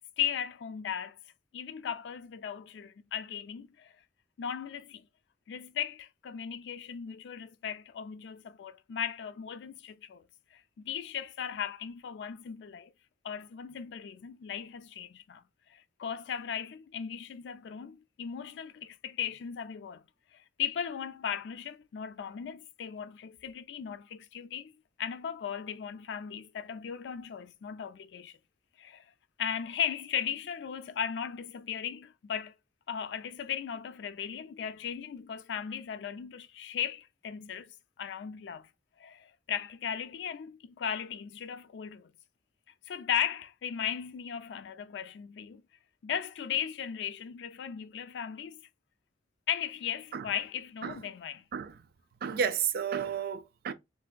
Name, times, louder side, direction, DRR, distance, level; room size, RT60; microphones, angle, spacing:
voice 1, 0.2-1.2 1.5-3.9 4.4-5.0 5.5-10.2 10.5-12.9 13.2-15.4 15.7-20.0 20.3-24.7 25.0-28.4 28.8-29.0 29.4-32.5 32.9-38.7 39.0-42.1 42.9-45.6 46.0-48.6 49.5-51.4, left 8 dB, 75° left, 0.3 m, -37 dB
voice 2, 52.2-53.7, right 7 dB, 60° right, 0.4 m, -32 dB
3.3 x 2.5 x 2.2 m
head